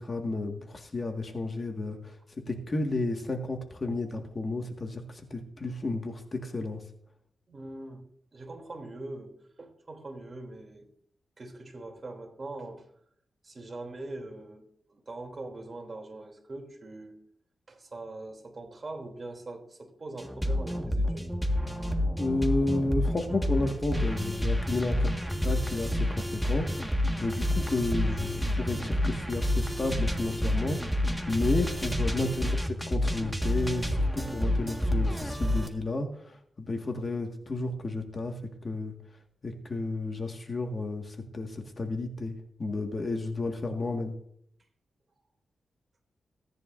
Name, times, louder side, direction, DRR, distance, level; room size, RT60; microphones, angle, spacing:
voice 1, 0.0-2.2 2.5-6.8 22.2-25.1 25.4-32.5 32.9-38.3 38.6-38.9 39.4-44.1, left 2 dB, 40° left, 3 dB, 1.8 m, -32 dB
voice 2, 7.5-10.9 11.4-12.8 13.4-14.6 14.9-17.2 17.7-21.3 32.1-32.4, right 2 dB, 40° right, 3 dB, 3.0 m, -42 dB
sound 1, 20.2-35.7, left 1 dB, ahead, 1.7 m, -29 dB
17.0 x 10.5 x 2.6 m, 0.67 s
cardioid pair, 85°, 0 cm